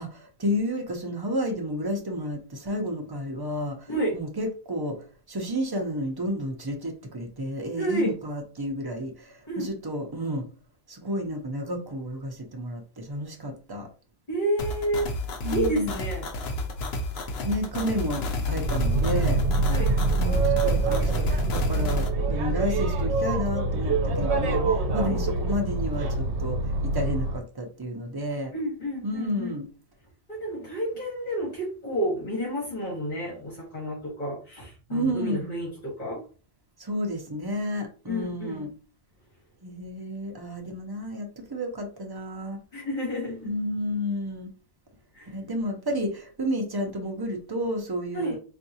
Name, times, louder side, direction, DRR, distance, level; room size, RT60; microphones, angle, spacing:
voice 1, 0.0-10.5 10.9-13.9 15.4-16.0 17.4-19.4 20.1-28.5 29.0-29.7 34.9-35.5 36.8-38.7 39.6-42.6 43.4-44.5 45.3-48.4, equal, 30° right, 0.4 m, -31 dB
voice 2, 7.8-8.1 9.5-9.7 14.3-15.1 15.5-16.3 19.7-19.9 25.0-25.2 28.5-29.6 30.3-36.2 38.0-38.6 42.7-43.5 45.1-45.3 48.1-48.4, right 1 dB, 40° left, 1.3 m, -30 dB
sound 1, 14.6-22.1, left 2 dB, 60° left, 0.8 m, -31 dB
Boat Water vehicle, 18.6-27.4, right 3 dB, 65° right, 0.9 m, -25 dB
3.6 x 2.5 x 2.7 m
omnidirectional pair, 1.3 m